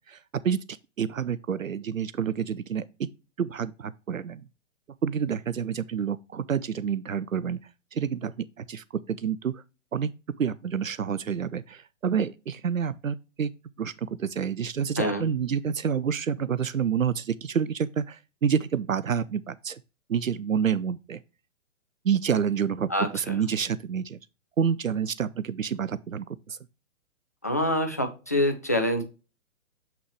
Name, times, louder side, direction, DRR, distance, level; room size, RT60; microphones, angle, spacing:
voice 1, 0.1-2.8 3.4-4.4 5.0-7.6 7.9-9.6 9.9-10.1 10.4-13.5 13.8-19.8 20.1-21.2 22.0-24.2 24.6-26.6, right 7 dB, 80° right, 0.5 m, -28 dB
voice 2, 22.9-23.4 27.4-29.0, left 1 dB, 15° left, 0.3 m, -26 dB
7.2 x 5.8 x 3.0 m
figure-of-eight pair, 125°, 39 cm